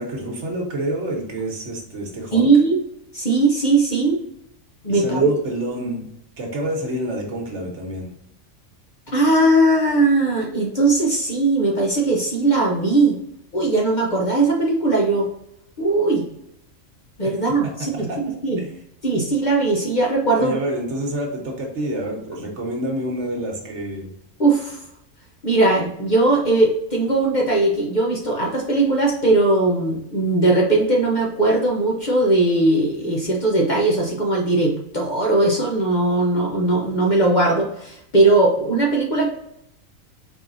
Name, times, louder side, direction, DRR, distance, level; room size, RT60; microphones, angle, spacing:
voice 1, 0.0-2.5 4.9-6.1 6.4-8.1 17.6-18.2 18.6-18.7 20.4-24.1, right 1 dB, 60° right, 0 dB, 1.4 m, -28 dB
voice 2, 2.3-2.8 3.1-4.2 4.8-5.3 9.1-13.2 13.5-15.3 15.8-16.3 17.2-18.6 19.0-20.6 24.4-24.8 25.4-39.3, right 2 dB, 40° left, -2 dB, 0.8 m, -19 dB
4.7 x 4.0 x 2.6 m, 0.79 s
omnidirectional pair, 1.4 m